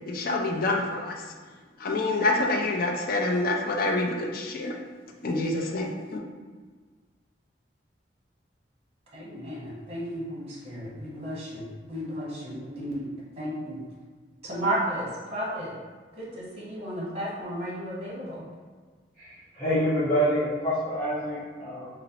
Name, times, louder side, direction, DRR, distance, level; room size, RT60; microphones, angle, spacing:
voice 1, 0.1-1.1 1.8-4.7 5.2-6.2, left 2 dB, 55° left, 1 dB, 0.4 m, -27 dB
voice 2, 9.1-13.8 14.4-15.7 16.1-18.5, right 1 dB, 35° right, -7 dB, 1.1 m, -33 dB
voice 3, 19.2-21.9, equal, 10° left, -17 dB, 1.0 m, -27 dB
4.1 x 2.0 x 2.8 m, 1.5 s
head